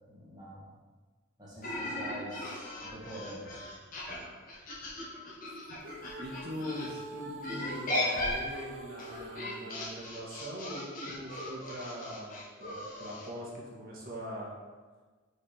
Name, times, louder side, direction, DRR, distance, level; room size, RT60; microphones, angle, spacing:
voice 1, 0.1-0.7 1.4-3.6, right 1 dB, 20° right, -7 dB, 1.9 m, -45 dB
sound 1, 1.6-6.9 7.4-13.3, left 1 dB, 40° left, 1.6 m, -37 dB
sound 2, 5.5-10.0, right 2 dB, 65° right, 0.7 m, -46 dB
voice 2, 6.2-14.6, equal, 45° right, -4 dB, 1.8 m, -42 dB
5.3 x 4.8 x 5.1 m, 1.4 s
head